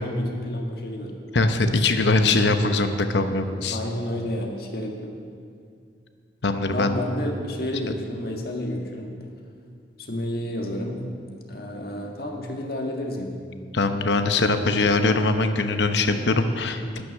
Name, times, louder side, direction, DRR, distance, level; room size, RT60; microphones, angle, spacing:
voice 1, 0.0-1.1 3.5-5.1 6.7-9.2 10.0-11.1 11.5-13.4, left 1 dB, 55° left, 2 dB, 1.6 m, -30 dB
voice 2, 1.3-3.8 6.4-7.0 13.7-17.0, left 3 dB, 75° left, 8 dB, 0.9 m, -22 dB
12.0 x 9.7 x 6.3 m, 2.2 s
head